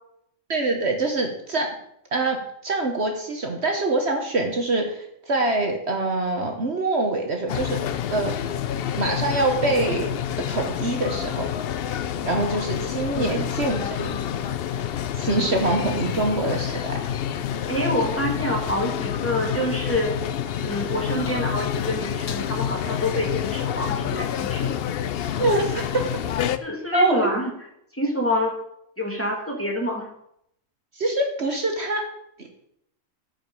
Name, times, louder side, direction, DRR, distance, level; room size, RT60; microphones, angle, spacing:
voice 1, 0.5-1.7 2.1-7.8 8.1-8.3 8.9-10.1 10.5-11.5 12.2-14.2 15.2-17.0 25.4-26.0 26.9-27.3 30.9-32.0 32.4-32.6, right 2 dB, 55° right, 3 dB, 1.4 m, -24 dB
sound 1, 7.5-26.6, left 9 dB, 60° left, 0.6 m, -28 dB
voice 2, 13.1-13.5 17.7-20.1 20.6-24.8 26.6-27.5 27.9-28.5 29.0-30.1, left 1 dB, 10° left, -1 dB, 2.1 m, -27 dB
13.5 x 5.2 x 5.4 m, 0.75 s
omnidirectional pair, 1.4 m